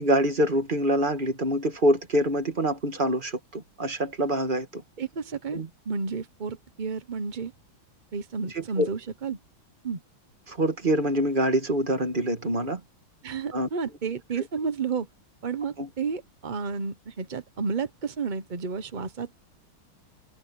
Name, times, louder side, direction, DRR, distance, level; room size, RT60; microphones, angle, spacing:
voice 1, 0.0-4.8 5.5-5.7 8.5-8.9 10.5-12.8 13.5-13.7 15.8-15.9, right 1 dB, 25° right, 1.8 m, -25 dB
voice 2, 5.0-5.6 5.9-7.5 8.1-9.4 9.8-10.0 13.2-15.1 15.4-19.3, right 5 dB, 45° right, 0.6 m, -31 dB
omnidirectional pair, 2.2 m